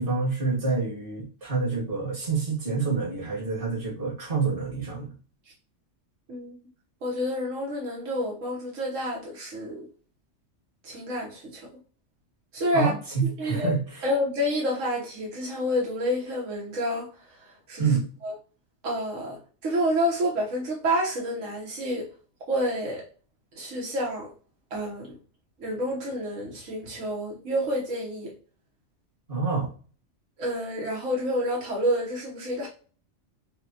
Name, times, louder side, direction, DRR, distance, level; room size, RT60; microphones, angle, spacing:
voice 1, 0.0-5.1 12.7-13.8 17.8-18.0 29.3-29.7, right 4 dB, 45° right, 1.8 m, -27 dB
voice 2, 7.0-9.8 10.8-11.7 12.5-12.9 13.2-13.7 14.0-17.1 17.7-18.0 18.2-18.3 18.8-22.1 22.5-23.0 23.5-24.3 24.7-25.1 25.6-28.3 30.4-32.7, equal, 85° right, 1.4 m, -29 dB
6.4 x 2.2 x 2.8 m
omnidirectional pair, 1.3 m